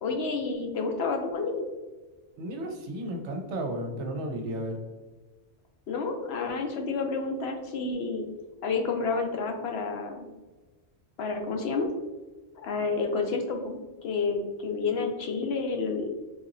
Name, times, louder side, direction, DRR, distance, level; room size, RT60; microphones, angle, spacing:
voice 1, 0.0-1.6 5.9-8.2 8.6-10.3 11.2-11.9 12.6-16.1, left 4 dB, 65° left, 3 dB, 0.8 m, -30 dB
voice 2, 2.4-4.8, right 1 dB, 65° right, 3 dB, 0.9 m, -33 dB
4.0 x 2.9 x 2.6 m, 1.2 s
omnidirectional pair, 1.3 m